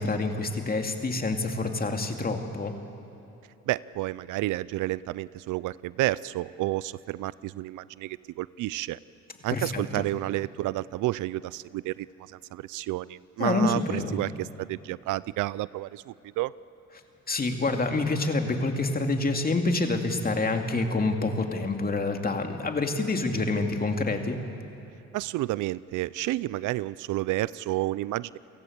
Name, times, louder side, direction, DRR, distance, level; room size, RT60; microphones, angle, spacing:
voice 1, 0.0-2.7 9.5-10.1 13.4-14.2 17.3-24.4, left 3 dB, 30° left, 4 dB, 2.5 m, -27 dB
voice 2, 3.7-9.0 9.4-16.5 25.1-28.4, right 17 dB, 85° right, 20 dB, 0.5 m, -30 dB
29.5 x 17.5 x 8.1 m, 2.9 s
cardioid pair, 90°, 30 cm